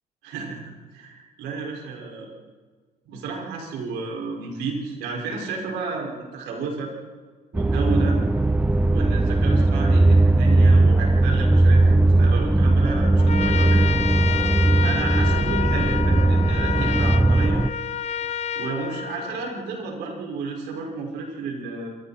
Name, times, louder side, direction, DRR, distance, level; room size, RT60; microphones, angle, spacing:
voice 1, 0.2-2.3 3.1-6.9 7.5-8.2 8.9-13.9 14.8-17.6 18.6-21.9, right 4 dB, 90° right, -1 dB, 5.9 m, -32 dB
sound 1, 7.5-17.7, right 2 dB, 10° right, 0.7 m, -18 dB
Trumpet, 13.2-19.7, left 9 dB, 40° left, 1.0 m, -29 dB
27.5 x 27.0 x 4.5 m, 1.5 s
cardioid pair, 110°, 17 cm